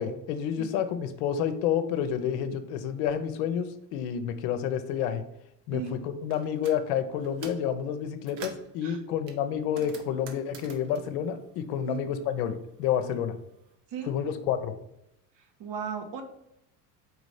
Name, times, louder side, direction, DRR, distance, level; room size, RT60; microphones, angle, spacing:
voice 1, 0.0-5.2 5.7-13.4 14.1-14.7, left 8 dB, 70° left, 9 dB, 0.8 m, -29 dB
sound 1, 6.3-6.8 7.2-7.7 8.1-8.7 9.3-12.2 12.5-13.6, right 5 dB, 70° right, 1.2 m, -47 dB
voice 2, 15.6-16.2, right 7 dB, 55° right, 5 dB, 1.4 m, -35 dB
4.8 x 4.0 x 4.9 m, 0.80 s
hypercardioid pair, 80°, 48 cm